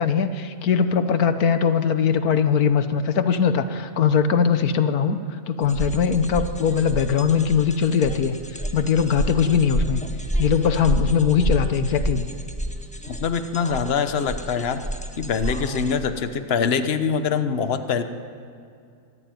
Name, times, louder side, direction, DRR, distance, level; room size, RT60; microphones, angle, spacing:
voice 1, 0.0-5.2 5.5-8.4 8.7-10.0 10.4-12.2, left 6 dB, 80° left, 10 dB, 1.5 m, -20 dB
sound 1, 5.6-15.9, equal, 5° left, 1.4 m, -29 dB
voice 2, 13.1-14.8 15.2-18.0, left 6 dB, 45° left, 9 dB, 1.2 m, -24 dB
24.5 x 14.0 x 9.3 m, 2.4 s
omnidirectional pair, 1.6 m